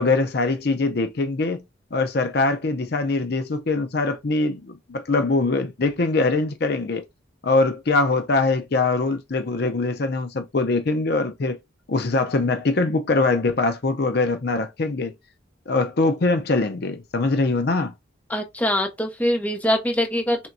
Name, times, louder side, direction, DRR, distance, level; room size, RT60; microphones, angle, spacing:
voice 1, 0.0-1.6 1.9-7.0 7.4-11.6 11.9-15.1 15.7-17.9, left 3 dB, 55° left, 0.5 m, -22 dB
voice 2, 18.3-20.4, equal, 10° left, 0.8 m, -23 dB
4.4 x 3.4 x 2.6 m
head